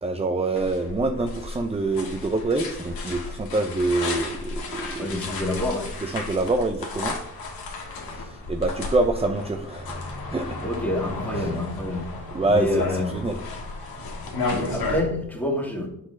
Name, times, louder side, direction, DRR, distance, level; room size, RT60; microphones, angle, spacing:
voice 1, 0.0-5.2 6.0-7.1 8.1-10.0 10.3-10.5 11.3-11.5 12.3-12.8 13.1-13.4, right 2 dB, 15° right, 7 dB, 0.5 m, -26 dB
sound 1, 0.5-15.0, left 3 dB, 70° left, 1.6 m, -33 dB
voice 2, 5.0-5.9 10.6-12.1 12.5-13.1 14.5-15.9, left 1 dB, 5° left, 1 dB, 1.9 m, -27 dB
5.9 x 4.2 x 5.1 m, 0.76 s
supercardioid pair, 55°, 38 cm